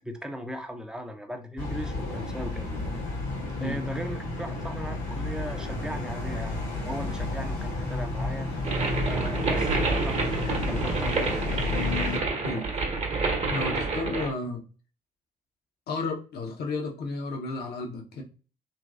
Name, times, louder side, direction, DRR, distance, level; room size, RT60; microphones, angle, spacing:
voice 1, 0.0-2.8 3.6-8.5 9.1-11.4, equal, 5° right, 5 dB, 0.6 m, -37 dB
sound 1, 1.6-12.2, left 2 dB, 70° left, 1.3 m, -31 dB
sound 2, 8.6-14.3, right 4 dB, 35° right, 0.9 m, -28 dB
voice 2, 13.5-14.6 15.9-18.2, left 3 dB, 55° left, 1 dB, 0.8 m, -32 dB
2.9 x 2.6 x 2.3 m, 0.36 s
hypercardioid pair, 50°, 20 cm